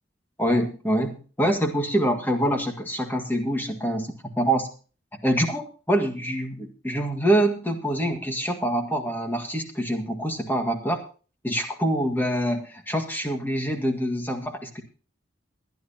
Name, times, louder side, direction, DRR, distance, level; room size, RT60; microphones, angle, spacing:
voice 1, 0.4-4.7 5.2-11.0 11.4-14.8, right 1 dB, 10° left, 4 dB, 1.8 m, -25 dB
22.0 x 10.5 x 2.8 m, 0.37 s
head